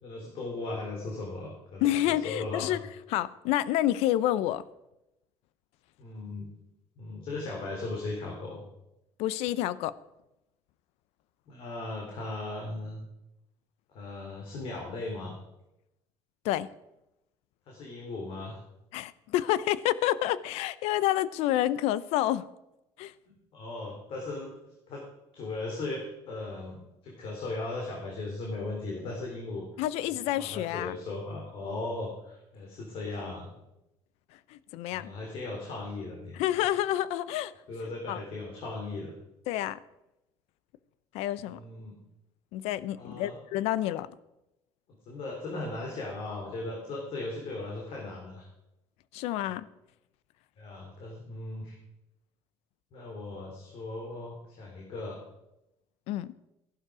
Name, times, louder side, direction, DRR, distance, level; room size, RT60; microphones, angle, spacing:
voice 1, 0.0-2.8 6.0-6.5 7.0-8.6 11.5-13.0 13.9-15.4 17.7-18.6 23.5-24.5 24.9-25.1 25.3-29.6 30.0-33.5 34.9-36.4 37.7-39.1 41.4-42.0 42.9-43.4 45.1-48.5 50.6-51.8 52.9-55.2, left 2 dB, 60° left, 3.6 m, -37 dB
voice 2, 1.8-2.8 3.1-4.6 9.2-10.0 16.4-16.7 18.9-22.5 23.0-23.1 29.8-31.0 34.5-35.1 36.3-37.5 38.1-38.2 39.5-39.8 41.1-41.6 42.5-44.1 49.1-49.7 56.1-56.3, left 13 dB, 80° left, 0.6 m, -28 dB
14.0 x 11.5 x 4.9 m
cardioid pair, 120°, 11 cm